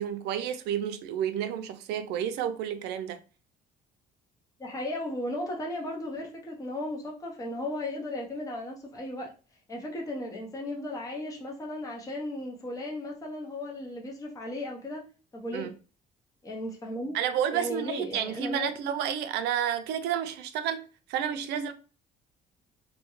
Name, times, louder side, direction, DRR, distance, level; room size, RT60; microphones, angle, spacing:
voice 1, 0.0-3.2 15.5-15.7 17.1-21.7, right 9 dB, 80° right, 0.4 m, -30 dB
voice 2, 4.6-9.3 9.7-15.0 15.3-15.7 16.4-17.2 17.5-18.7, left 1 dB, 20° left, 0.7 m, -35 dB
2.2 x 2.1 x 3.0 m
cardioid pair, 110°, 17 cm